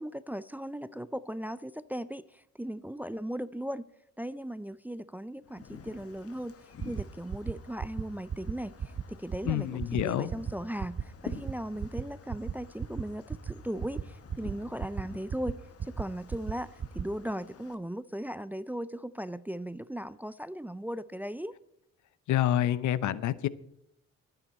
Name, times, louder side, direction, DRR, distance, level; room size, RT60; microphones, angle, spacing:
voice 1, 0.0-3.8 4.2-6.6 6.8-21.5, right 1 dB, 5° right, 0.4 m, -37 dB
Wind, 5.4-17.8, left 6 dB, 50° left, 1.6 m, -50 dB
sound 1, 6.8-7.0 7.3-7.5 7.8-8.0 8.3-8.5 8.8-9.0 9.3-9.5 9.8-10.0 10.3-10.5 10.8-11.0 11.3-11.5 11.8-12.0 12.3-12.5 12.8-13.0 13.3-13.5 13.8-14.0 14.3-14.5 14.8-15.0 15.3-15.5 15.8-16.0 16.3-16.5 16.8-17.0, right 7 dB, 35° right, 0.7 m, -34 dB
voice 2, 9.4-10.3 22.3-23.5, left 12 dB, 70° left, 0.7 m, -27 dB
23.5 x 9.2 x 4.2 m
cardioid pair, 90°, 30 cm